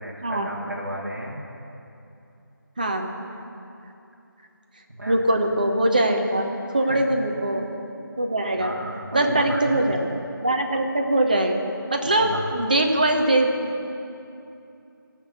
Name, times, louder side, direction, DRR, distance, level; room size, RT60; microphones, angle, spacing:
voice 1, 0.0-1.4 4.9-5.2 6.9-7.0 8.5-9.7 12.2-12.5, right 1 dB, 50° right, -4 dB, 1.5 m, -33 dB
voice 2, 2.8-3.1 5.1-7.7 8.2-8.7 9.1-11.6 11.9-13.5, right 1 dB, 25° right, 3 dB, 0.6 m, -22 dB
15.5 x 6.0 x 6.6 m, 2.7 s
figure-of-eight pair, 165°, 12 cm